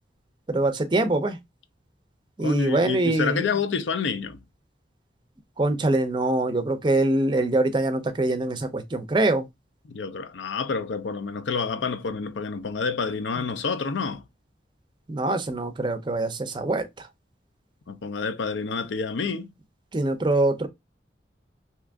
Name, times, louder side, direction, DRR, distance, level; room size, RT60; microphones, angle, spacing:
voice 1, 0.5-1.4 2.4-3.4 5.6-9.5 15.1-16.9 19.9-20.7, right 2 dB, 25° right, 0.4 m, -24 dB
voice 2, 2.4-4.4 9.9-14.2 17.9-19.5, left 5 dB, 85° left, 0.5 m, -28 dB
2.8 x 2.5 x 3.3 m
head